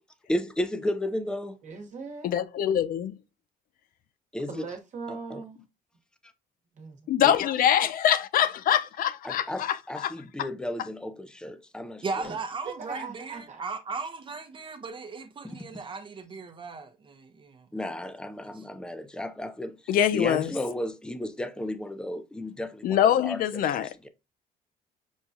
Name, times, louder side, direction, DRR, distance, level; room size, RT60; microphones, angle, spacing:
voice 1, 0.3-1.6 4.3-4.6 5.1-5.4 7.2-7.4 9.2-12.0 17.7-19.8 20.1-23.4 23.7-24.1, left 1 dB, 5° left, 0.5 m, -33 dB
voice 2, 1.6-2.3 4.5-5.6 6.8-7.0 12.2-12.4 12.6-13.6, right 5 dB, 45° right, 1.2 m, -39 dB
voice 3, 2.2-3.1 7.1-10.1 10.4-10.5 19.9-20.5 22.8-23.9, left 10 dB, 55° left, 0.5 m, -24 dB
voice 4, 12.0-18.0 18.5-18.6, right 4 dB, 30° right, 0.7 m, -37 dB
6.2 x 2.3 x 2.7 m
cardioid pair, 110°, 17 cm